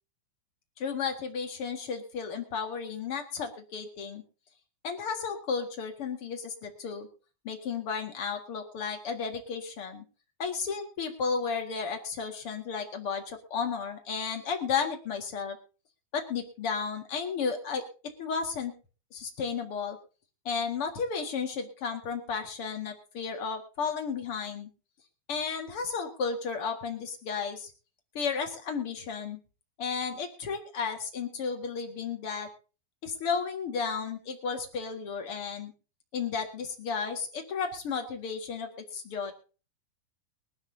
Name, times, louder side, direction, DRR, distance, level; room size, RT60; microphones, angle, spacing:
voice 1, 0.8-4.2 4.8-7.1 7.4-10.0 10.4-15.6 16.1-17.8 18.2-18.7 19.1-20.0 20.4-24.7 25.3-27.7 28.1-29.4 29.8-32.5 33.0-35.7 36.1-39.3, left 5 dB, 65° left, 4 dB, 1.4 m, -33 dB
23.0 x 12.0 x 2.7 m, 0.35 s
omnidirectional pair, 5.7 m